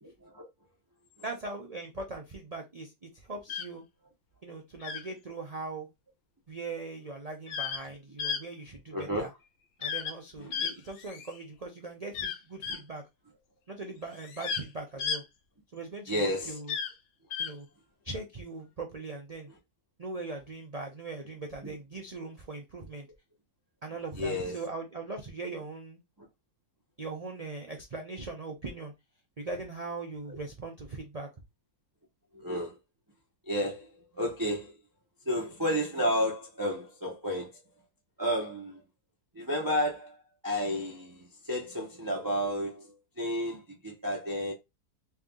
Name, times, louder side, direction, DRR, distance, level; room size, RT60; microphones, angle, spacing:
voice 1, 1.2-3.8 4.4-5.9 6.5-9.3 9.8-13.0 13.7-15.2 15.7-16.8 17.4-17.7 18.0-19.5 20.0-23.1 23.8-26.0 27.0-28.9 29.4-31.3, right 3 dB, 85° right, 0.3 m, -40 dB
sound 1, 3.5-3.7 4.8-5.1 7.5-7.8 8.2-8.4 9.8-10.1 10.5-11.4 12.1-12.8 14.1-14.6 15.0-15.2 16.7-16.9 17.3-17.5, left 7 dB, 70° left, 1.0 m, -33 dB
voice 2, 8.9-9.3 10.4-10.6 16.1-16.6 21.6-21.8 24.2-24.5 32.3-32.8 33.5-34.8 35.3-37.5 38.2-38.8 39.3-44.5, equal, 20° right, 0.5 m, -32 dB
3.5 x 2.8 x 3.6 m
omnidirectional pair, 1.7 m